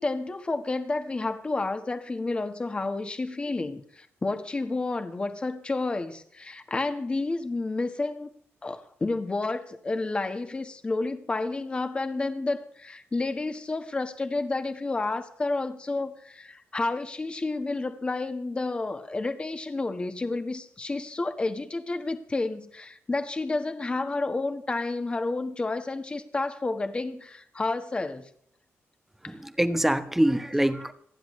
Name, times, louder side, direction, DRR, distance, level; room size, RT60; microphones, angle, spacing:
voice 1, 0.0-8.3 8.6-28.3 29.2-29.4, left 3 dB, 20° left, 8 dB, 1.4 m, -30 dB
voice 2, 29.2-30.9, right 1 dB, 5° right, 10 dB, 1.1 m, -24 dB
28.0 x 10.0 x 3.2 m, 0.65 s
wide cardioid pair, 150°, 5 cm